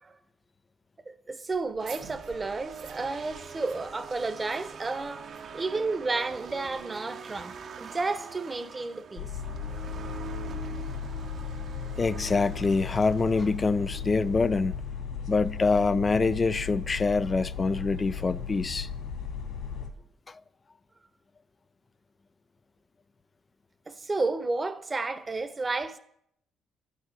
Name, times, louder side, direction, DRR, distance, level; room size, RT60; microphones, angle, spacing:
voice 1, 1.1-5.3 5.5-9.3 23.9-26.0, right 3 dB, 25° right, 1.0 m, -32 dB
sound 1, 1.5-6.9, right 7 dB, 80° right, 1.5 m, -51 dB
sound 2, 1.8-14.8, right 6 dB, 55° right, 1.1 m, -44 dB
sound 3, 9.2-19.9, left 6 dB, 70° left, 2.6 m, -36 dB
voice 2, 12.0-14.7 15.3-18.9 20.3-20.4, left 4 dB, 30° left, 0.5 m, -25 dB
11.5 x 6.5 x 8.1 m
cardioid pair, 90°, 0 cm